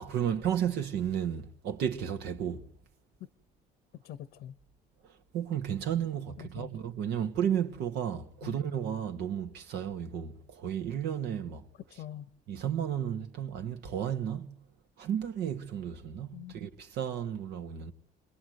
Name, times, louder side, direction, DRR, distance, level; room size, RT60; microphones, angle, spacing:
voice 1, 0.0-2.7 5.3-11.7 12.5-14.6 15.0-17.9, right 9 dB, 80° right, 1.9 m, -33 dB
voice 2, 3.9-4.6 6.4-6.7 7.2-7.3 8.4-8.7 11.9-12.3 16.3-16.6, left 11 dB, 80° left, 1.1 m, -44 dB
28.5 x 21.5 x 8.0 m
cardioid pair, 110°, 17 cm